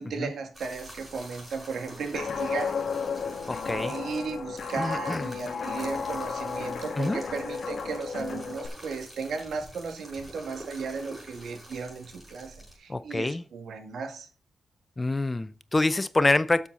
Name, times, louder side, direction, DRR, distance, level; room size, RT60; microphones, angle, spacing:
voice 1, 0.0-2.8 3.7-14.3, right 5 dB, 65° right, 2.3 m, -35 dB
sound 1, 0.5-12.8, equal, ahead, 5.8 m, -47 dB
Guitar, 2.1-8.7, left 5 dB, 50° left, 2.0 m, -33 dB
voice 2, 3.5-3.9 4.8-5.2 7.0-7.2 12.9-13.4 15.0-16.7, left 2 dB, 15° left, 0.4 m, -26 dB
12.5 x 7.4 x 4.0 m
wide cardioid pair, 175°, 0 cm